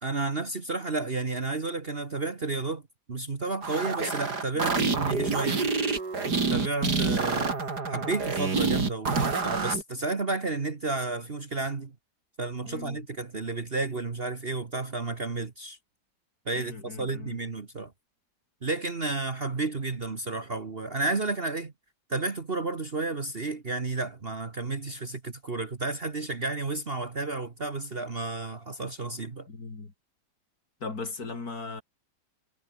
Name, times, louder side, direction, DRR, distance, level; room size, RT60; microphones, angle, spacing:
voice 1, 0.0-2.8 3.1-5.7 6.5-7.5 7.9-11.9 12.4-15.8 16.4-17.9 18.6-21.7 22.1-29.5, right 3 dB, 35° right, 1.7 m, -32 dB
sound 1, 3.6-9.8, right 4 dB, 75° right, 3.8 m, -27 dB
voice 2, 4.5-4.9 12.6-13.0 16.5-17.4 29.5-29.9 30.8-31.8, left 4 dB, 60° left, 3.8 m, -38 dB
omnidirectional pair, 1.8 m